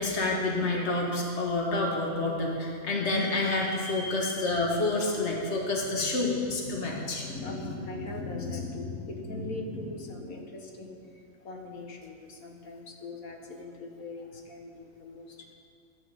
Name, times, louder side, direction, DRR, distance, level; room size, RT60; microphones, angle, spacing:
voice 1, 0.0-7.2, left 2 dB, 50° left, -1 dB, 2.1 m, -28 dB
voice 2, 6.5-15.6, left 2 dB, 80° left, 2 dB, 2.0 m, -39 dB
12.5 x 11.0 x 7.0 m, 2.3 s
omnidirectional pair, 1.5 m